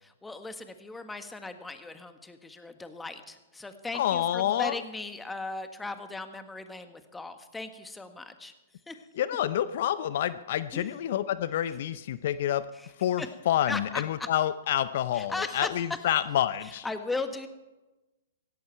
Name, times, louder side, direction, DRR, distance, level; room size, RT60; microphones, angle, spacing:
voice 1, 0.0-8.5 8.9-9.0 10.7-10.9 12.7-12.9 13.2-13.3 13.7-14.3 15.1-15.7 16.8-17.5, left 3 dB, 10° left, 8 dB, 1.5 m, -37 dB
voice 2, 3.9-4.8 9.2-12.6 13.0-16.9, left 11 dB, 55° left, 15 dB, 0.6 m, -28 dB
17.0 x 16.5 x 4.6 m, 1.1 s
hypercardioid pair, 120°, 0 cm